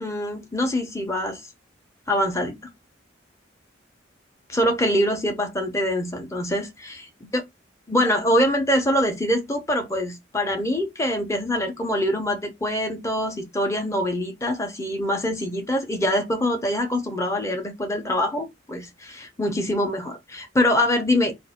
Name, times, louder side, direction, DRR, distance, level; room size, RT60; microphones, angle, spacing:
voice 1, 0.0-1.4 2.1-2.5 4.5-7.0 7.3-7.4 7.9-21.3, left 1 dB, 15° left, 0.7 m, -24 dB
2.6 x 2.4 x 4.1 m
head